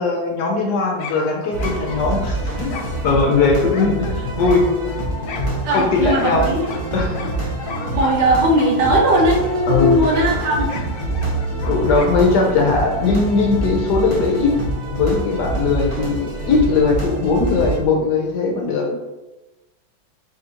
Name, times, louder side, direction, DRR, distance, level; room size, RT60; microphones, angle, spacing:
voice 1, 0.0-2.8 3.0-4.6 5.7-6.4 6.9-7.3 9.7-10.0 11.6-14.5 14.9-18.9, left 4 dB, 70° left, 1 dB, 1.1 m, -19 dB
sound 1, 1.0-12.5, left 4 dB, 85° left, 0.7 m, -35 dB
sound 2, 1.5-17.8, right 2 dB, 25° right, 0.6 m, -26 dB
sound 3, 4.1-15.6 16.3-18.7, equal, 55° left, 0.8 m, -34 dB
voice 2, 5.6-6.6 7.9-10.7, right 1 dB, 70° right, -2 dB, 1.5 m, -18 dB
4.3 x 3.8 x 2.8 m, 1.1 s
omnidirectional pair, 2.1 m